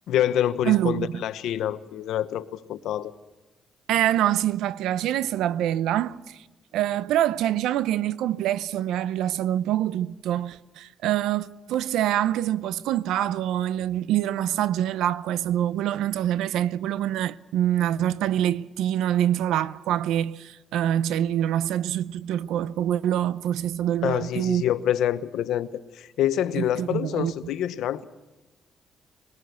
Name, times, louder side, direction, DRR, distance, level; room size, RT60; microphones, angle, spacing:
voice 1, 0.1-3.1 24.0-28.0, left 11 dB, 85° left, 1.0 m, -26 dB
voice 2, 0.6-1.2 3.9-6.4 6.7-24.6 26.6-27.3, right 11 dB, 90° right, 0.7 m, -25 dB
20.5 x 20.0 x 8.1 m
cardioid pair, 90°, 0 cm